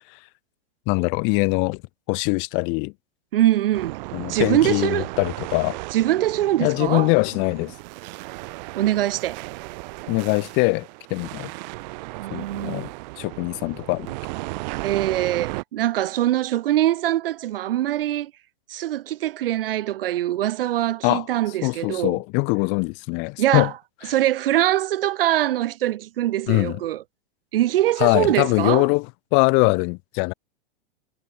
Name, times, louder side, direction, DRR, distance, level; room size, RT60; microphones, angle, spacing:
voice 1, 0.9-1.8 2.1-2.9 4.1-5.8 6.6-7.7 10.1-11.5 12.3-12.9 13.2-14.1 21.0-21.3 21.6-23.7 24.1-24.2 26.5-26.8 28.0-29.1 29.3-30.3, left 34 dB, 40° left, 4.5 m, -22 dB
voice 2, 3.3-4.0 4.3-5.1 5.9-7.1 8.8-9.4 12.2-12.9 14.8-18.3 18.7-22.2 23.4-23.7 24.1-27.0 27.5-28.9, right 13 dB, 65° right, 3.6 m, -23 dB
sound 1, 3.7-15.6, right 24 dB, 45° right, 7.3 m, -35 dB
supercardioid pair, 150°, 30 cm